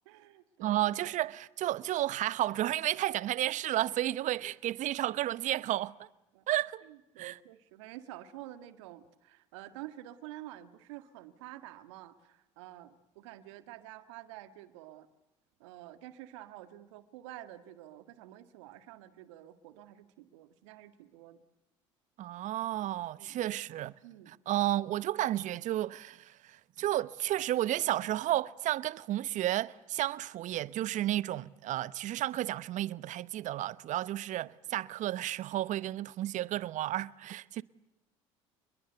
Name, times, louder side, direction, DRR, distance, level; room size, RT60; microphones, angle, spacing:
voice 1, 0.0-0.8 6.3-6.4 6.9-15.1 15.6-21.4 23.2-23.5 24.0-24.3, right 14 dB, 75° right, 1.8 m, -49 dB
voice 2, 0.6-6.1 6.5-6.8 7.2-7.4 22.2-23.9 24.3-37.6, right 14 dB, 55° right, 0.9 m, -32 dB
29.5 x 22.0 x 8.0 m
hypercardioid pair, 70°, 15 cm